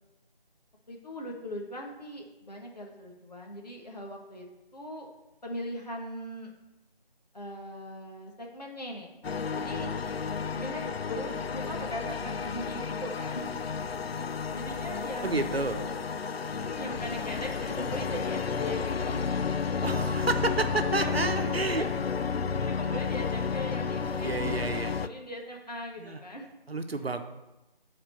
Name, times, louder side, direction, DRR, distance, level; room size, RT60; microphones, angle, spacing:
voice 1, 0.9-4.4 4.7-5.1 5.4-6.5 7.3-9.1 9.5-9.9 10.5-13.5 14.5-15.5 16.5-19.2 21.0-22.0 22.5-26.5 27.0-27.1, equal, 45° left, 0 dB, 1.6 m, -39 dB
sound 1, 9.2-25.1, left 5 dB, 85° left, 0.5 m, -32 dB
voice 2, 15.2-15.8 19.8-21.8 24.2-24.9 26.0-26.2 26.7-27.2, right 3 dB, 85° right, 7 dB, 1.0 m, -30 dB
7.4 x 4.4 x 6.8 m, 0.99 s
figure-of-eight pair, 170°, 30 cm